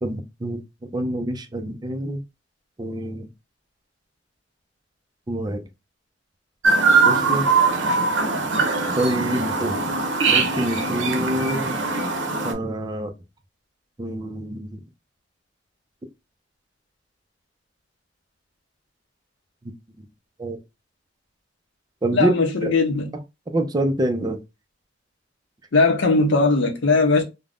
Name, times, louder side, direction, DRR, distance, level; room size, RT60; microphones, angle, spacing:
voice 1, 0.0-0.6 0.9-2.2 2.8-3.3 5.3-5.7 7.0-7.5 8.9-9.8 10.3-11.8 12.4-13.1 14.0-14.8 20.0-20.1 20.4-20.6 22.0-22.3 22.6-22.7 23.5-24.4, right 1 dB, 20° right, 0.4 m, -26 dB
Chirp tweet, 6.6-12.5, right 4 dB, 75° right, 0.7 m, -21 dB
voice 2, 22.1-23.1 25.7-27.2, left 3 dB, 85° left, 0.6 m, -19 dB
2.5 x 2.1 x 3.3 m
head